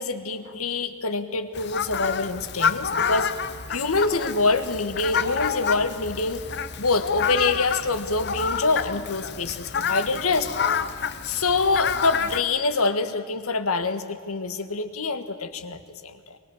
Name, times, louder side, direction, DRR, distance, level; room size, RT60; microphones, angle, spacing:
voice 1, 0.0-3.3 3.7-6.4 6.8-10.5 11.2-16.4, left 3 dB, 85° left, 9 dB, 1.6 m, -25 dB
Fowl, 1.5-12.4, left 6 dB, 50° left, 0.9 m, -28 dB
25.0 x 20.5 x 7.2 m, 2.3 s
head